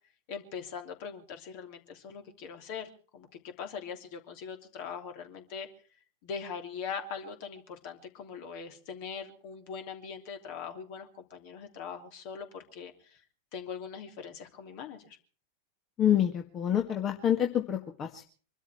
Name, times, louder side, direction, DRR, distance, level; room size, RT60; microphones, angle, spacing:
voice 1, 0.3-5.7 6.2-13.2 13.5-15.2, left 6 dB, 45° left, 6 dB, 3.0 m, -41 dB
voice 2, 16.0-18.2, left 10 dB, 30° left, 4 dB, 1.8 m, -27 dB
25.0 x 13.0 x 4.4 m, 0.41 s
figure-of-eight pair, 90°, 0 cm